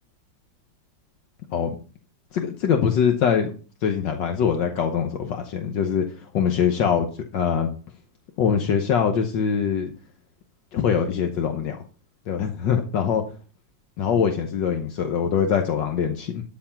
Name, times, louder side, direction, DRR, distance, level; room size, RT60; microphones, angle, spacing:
voice 1, 2.3-3.5 3.8-7.7 8.4-9.9 10.7-11.8 12.3-13.2 14.0-16.4, left 7 dB, 75° left, 5 dB, 1.6 m, -23 dB
13.0 x 4.6 x 5.8 m, 0.38 s
omnidirectional pair, 2.0 m